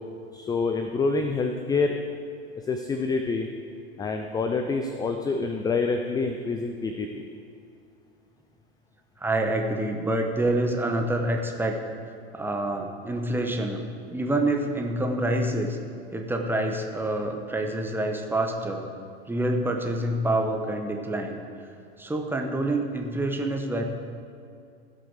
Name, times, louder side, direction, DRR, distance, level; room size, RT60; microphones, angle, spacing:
voice 1, 0.3-2.0 2.7-3.5 4.0-7.2, left 4 dB, 10° left, 5 dB, 0.5 m, -27 dB
voice 2, 9.2-11.8 12.3-13.8 14.1-15.8 16.1-18.8 19.3-21.4 22.0-23.8, right 1 dB, 5° right, 3 dB, 1.1 m, -27 dB
17.0 x 6.3 x 5.0 m, 2.4 s
figure-of-eight pair, 85°, 32 cm